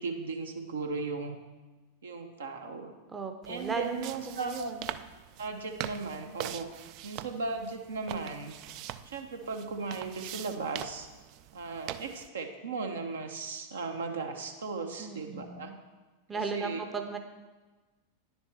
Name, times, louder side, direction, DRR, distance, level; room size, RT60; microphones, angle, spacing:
voice 1, 0.0-1.4 2.0-2.9 3.5-4.7 5.4-6.7 7.0-8.6 9.0-11.1 11.5-15.7 16.3-16.8, right 4 dB, 65° right, 4 dB, 0.8 m, -36 dB
voice 2, 3.1-4.9 15.0-15.8 16.3-17.2, right 4 dB, 15° right, 5 dB, 0.7 m, -36 dB
sound 1, 3.4-12.3, right 13 dB, 40° right, 0.3 m, -43 dB
10.0 x 7.1 x 3.4 m, 1.2 s
figure-of-eight pair, 90°, 0 cm